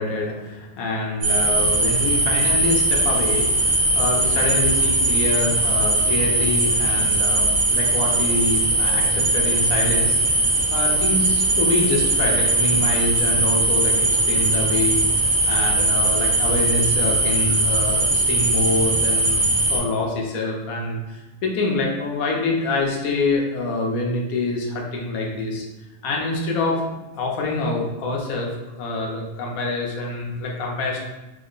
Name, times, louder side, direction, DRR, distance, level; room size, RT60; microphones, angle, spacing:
voice 1, 0.0-15.0 15.3-25.6 26.0-31.0, left 2 dB, 65° left, -1 dB, 0.9 m, -26 dB
sound 1, 1.2-19.8, right 2 dB, 80° right, 1.6 m, -20 dB
3.6 x 2.1 x 3.7 m, 1.1 s
omnidirectional pair, 2.0 m